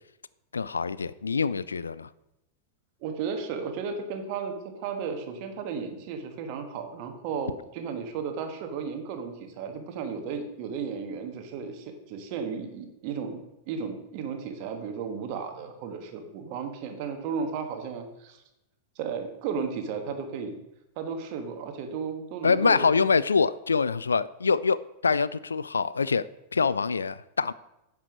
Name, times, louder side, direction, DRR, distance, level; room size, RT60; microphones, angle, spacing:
voice 1, 0.5-2.1 22.4-26.3 26.5-27.5, left 5 dB, 75° left, 18 dB, 0.3 m, -25 dB
voice 2, 3.0-13.4 13.7-18.4 18.9-20.5 20.9-22.9, right 6 dB, 45° right, 6 dB, 1.6 m, -34 dB
10.5 x 5.5 x 6.3 m, 0.90 s
figure-of-eight pair, 90°, 0 cm